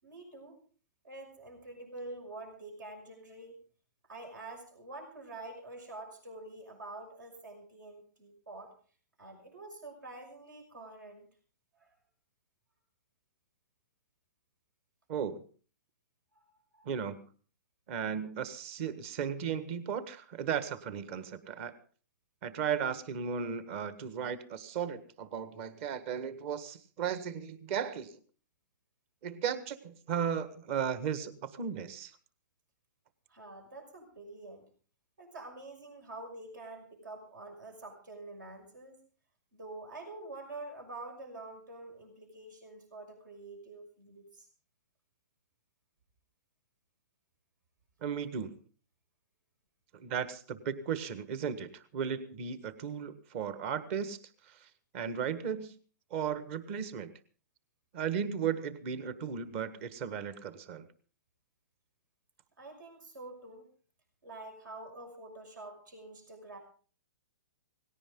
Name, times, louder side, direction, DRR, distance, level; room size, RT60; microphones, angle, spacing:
voice 1, 0.0-0.6 1.0-3.6 4.1-8.7 9.2-11.3 11.7-11.9 16.3-16.4 16.7-16.9 33.3-34.6 35.2-39.0 39.5-44.5 62.6-63.7 64.2-66.6, right 2 dB, 80° right, 3 dB, 6.1 m, -47 dB
voice 2, 15.1-15.5 16.8-17.2 17.9-21.7 22.4-28.2 29.2-32.1 48.0-48.5 49.9-54.2 54.4-54.7 54.9-55.7 56.1-57.1 57.9-60.8, right 7 dB, 45° right, 12 dB, 1.5 m, -35 dB
18.5 x 17.0 x 3.8 m, 0.41 s
hypercardioid pair, 130°, 10 cm